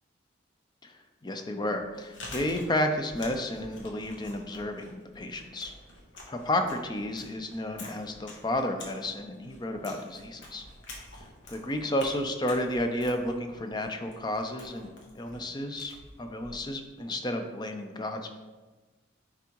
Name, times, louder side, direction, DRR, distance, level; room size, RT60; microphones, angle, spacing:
voice 1, 1.2-5.7 6.3-10.6 11.5-14.9 15.2-18.3, left 1 dB, 20° left, 5 dB, 0.4 m, -32 dB
Chewing mastication, 1.8-16.9, left 2 dB, 75° left, 1.3 m, -48 dB
9.8 x 3.5 x 3.0 m, 1.3 s
head